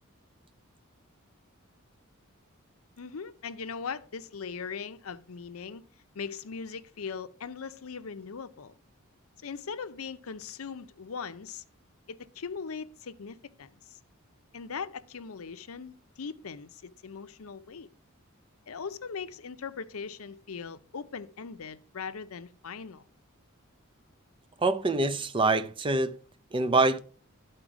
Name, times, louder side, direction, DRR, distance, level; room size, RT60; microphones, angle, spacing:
voice 1, 3.0-5.8 6.1-8.8 9.4-11.6 12.1-14.0 14.5-17.9 18.7-23.0, left 5 dB, 80° left, 0.6 m, -40 dB
voice 2, 24.6-26.2 26.5-27.0, right 3 dB, 25° right, 0.5 m, -25 dB
11.5 x 4.4 x 5.0 m
head